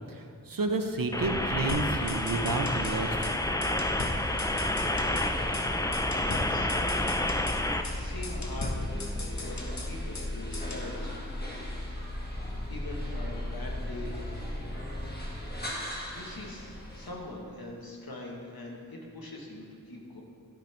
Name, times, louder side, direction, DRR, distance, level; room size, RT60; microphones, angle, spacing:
voice 1, 0.5-3.3, right 3 dB, 65° right, 5 dB, 0.6 m, -30 dB
sound 1, 1.1-7.8, left 1 dB, 10° left, 0.3 m, -30 dB
sound 2, 1.2-17.1, left 1 dB, 25° left, 1.4 m, -37 dB
sound 3, 1.7-3.0 3.2-3.3 3.6-5.3 5.5-5.7 5.9-7.6 7.8-8.0 8.2-10.3 10.5-10.9, left 2 dB, 50° left, 0.9 m, -38 dB
voice 2, 6.2-6.7 7.9-8.9 9.4-11.2 11.6-11.7 12.7-14.2 16.1-20.2, left 1 dB, 70° left, -2 dB, 1.2 m, -43 dB
12.0 x 4.3 x 3.3 m, 2.3 s
wide cardioid pair, 45°, 37 cm